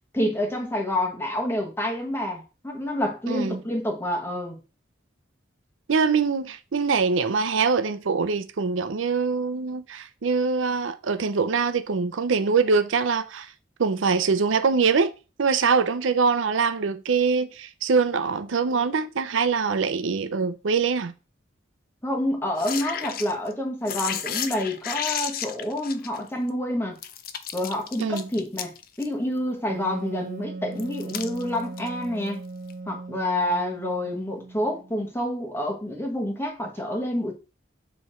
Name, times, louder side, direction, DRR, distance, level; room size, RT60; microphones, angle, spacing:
voice 1, 0.1-4.6 22.0-27.0 27.5-32.4 32.9-37.3, left 1 dB, 10° left, 1.2 m, -28 dB
voice 2, 3.3-3.6 5.9-13.5 13.8-15.1 15.4-21.1 28.0-28.3, right 5 dB, 85° right, 0.6 m, -23 dB
sound 1, 22.6-23.5 23.8-26.5 27.0-29.1 30.8-31.9 32.7-32.8, left 9 dB, 50° left, 0.5 m, -32 dB
Wind instrument woodwind instrument, 29.7-35.1, right 3 dB, 40° right, 0.3 m, -38 dB
7.0 x 3.2 x 4.3 m
head